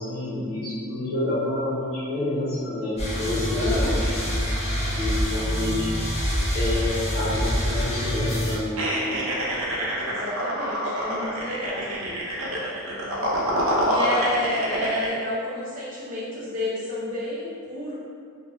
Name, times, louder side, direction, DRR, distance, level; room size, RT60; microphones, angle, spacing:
voice 1, 0.0-5.9 6.5-9.2, left 1 dB, 85° left, -12 dB, 0.8 m, -28 dB
sound 1, 3.0-8.6, equal, 30° left, 0.6 m, -26 dB
voice 2, 3.5-4.1 10.1-12.2 12.8-13.5 13.8-17.9, left 1 dB, 40° right, -9 dB, 0.9 m, -31 dB
sound 2, 8.8-15.1, equal, 65° right, 0.5 m, -27 dB
2.7 x 2.1 x 3.1 m, 2.3 s
head